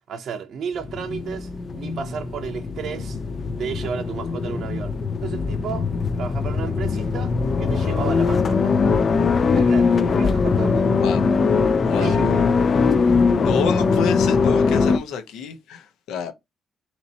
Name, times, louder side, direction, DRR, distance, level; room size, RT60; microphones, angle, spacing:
voice 1, 0.1-3.2 3.5-8.8 9.4-11.0 11.8-12.5, right 6 dB, 65° right, 0.7 m, -33 dB
sound 1, 0.8-15.0, left 4 dB, 45° left, 0.4 m, -21 dB
voice 2, 10.9-11.3 11.8-12.2 13.4-16.3, left 6 dB, 85° left, 0.7 m, -29 dB
4.0 x 2.9 x 2.8 m
cardioid pair, 90°, 0 cm